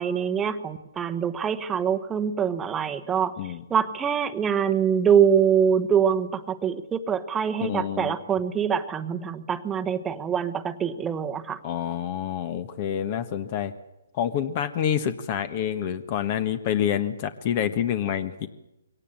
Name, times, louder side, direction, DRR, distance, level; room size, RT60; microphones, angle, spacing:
voice 1, 0.0-3.3 3.7-11.6, right 7 dB, 15° right, 9 dB, 1.2 m, -24 dB
voice 2, 7.6-8.2 11.6-13.7 14.1-18.5, left 9 dB, 35° left, 11 dB, 1.5 m, -27 dB
23.0 x 18.0 x 7.8 m, 0.91 s
hypercardioid pair, 140°, 0 cm